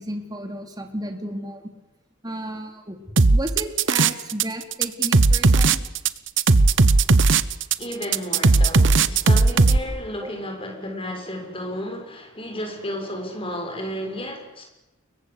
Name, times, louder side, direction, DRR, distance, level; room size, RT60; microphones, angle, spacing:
voice 1, 0.0-1.6 2.2-3.0 3.3-5.8 10.2-10.3, right 1 dB, 20° right, 4 dB, 3.4 m, -33 dB
sound 1, 3.2-4.4 4.7-9.8, right 3 dB, 60° right, 1.0 m, -16 dB
voice 2, 7.8-14.6, equal, 25° left, 3 dB, 6.9 m, -32 dB
29.5 x 23.0 x 8.3 m, 0.92 s
head